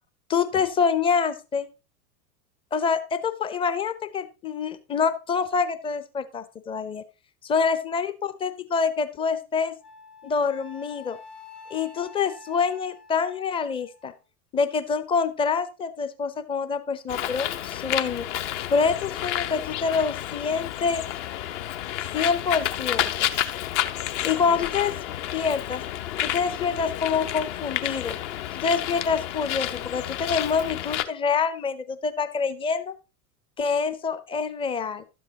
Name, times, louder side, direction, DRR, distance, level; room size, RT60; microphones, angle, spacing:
voice 1, 0.3-1.7 2.7-7.0 7.4-9.8 10.2-11.2 11.7-14.1 14.5-18.3 18.7-21.1 22.1-23.3 24.2-24.9 25.3-25.8 26.2-28.2 28.5-32.9 33.6-35.0, left 5 dB, 10° left, 12 dB, 0.5 m, -26 dB
Wind instrument woodwind instrument, 9.8-14.2, left 5 dB, 75° left, 1.5 m, -47 dB
Bird, 17.1-31.0, left 12 dB, 50° left, 0.8 m, -30 dB
12.0 x 7.7 x 2.8 m, 0.30 s
figure-of-eight pair, 85°, 46 cm